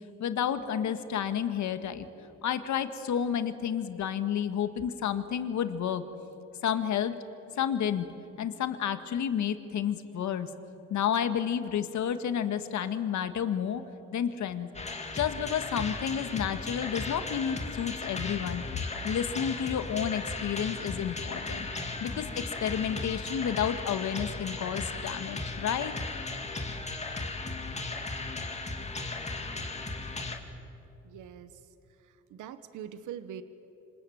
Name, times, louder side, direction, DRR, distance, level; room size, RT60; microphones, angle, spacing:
voice 1, 0.2-2.1 2.4-6.0 6.6-7.2 7.5-8.1 8.4-10.5 10.9-13.8 14.1-14.7 15.1-18.6 19.0-21.7 22.0-25.9, left 8 dB, 70° left, 10 dB, 1.8 m, -30 dB
sound 1, 14.7-30.4, left 3 dB, 20° left, 2.7 m, -36 dB
voice 2, 31.0-31.5 32.1-33.4, right 9 dB, 85° right, 11 dB, 1.3 m, -43 dB
26.5 x 26.5 x 7.9 m, 2.8 s
cardioid pair, 90°, 30 cm